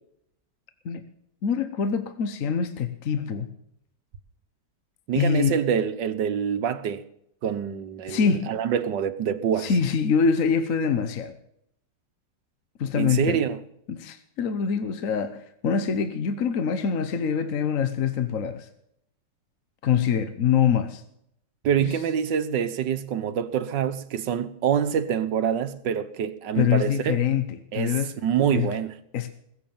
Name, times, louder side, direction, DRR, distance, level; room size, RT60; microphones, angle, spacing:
voice 1, 1.4-3.5 5.1-5.5 8.1-8.5 9.6-11.3 12.8-13.4 13.9-18.7 19.8-21.0 21.8-21.9 26.5-28.1 28.5-28.7 29.1-29.3, left 7 dB, 55° left, 1.2 m, -24 dB
voice 2, 5.1-7.0 7.4-9.7 12.9-13.6 21.6-27.2 27.7-29.0, right 8 dB, 80° right, 1.6 m, -26 dB
21.5 x 7.3 x 7.1 m
omnidirectional pair, 1.9 m